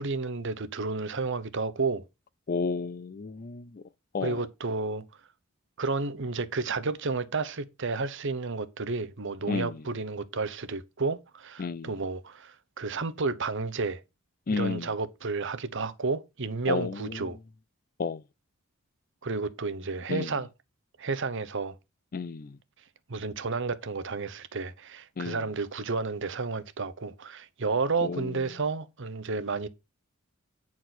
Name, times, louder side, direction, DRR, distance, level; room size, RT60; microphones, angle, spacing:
voice 1, 0.0-2.0 4.2-5.0 5.8-14.0 14.5-17.4 19.2-20.5 21.0-21.8 23.1-29.7, right 4 dB, 60° right, 0.9 m, -31 dB
voice 2, 2.5-3.8 4.1-4.4 9.5-9.7 11.6-11.9 14.5-14.9 16.7-17.2 18.0-18.2 20.1-20.3 22.1-22.5 25.2-25.4 28.0-28.3, left 4 dB, 40° left, 0.4 m, -31 dB
9.5 x 4.6 x 5.9 m
head